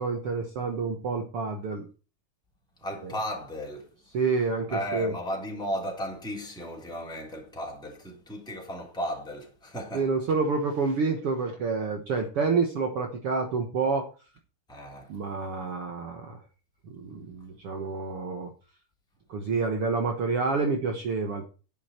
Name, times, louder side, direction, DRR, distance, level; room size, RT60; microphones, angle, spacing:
voice 1, 0.0-1.9 3.0-3.1 4.1-5.1 9.9-14.1 15.1-16.4 16.9-18.5 19.3-21.5, right 4 dB, 55° right, 2.0 m, -28 dB
voice 2, 2.8-3.9 4.7-10.0 14.7-15.1, equal, ahead, 3.2 m, -35 dB
11.5 x 9.6 x 4.5 m
omnidirectional pair, 3.7 m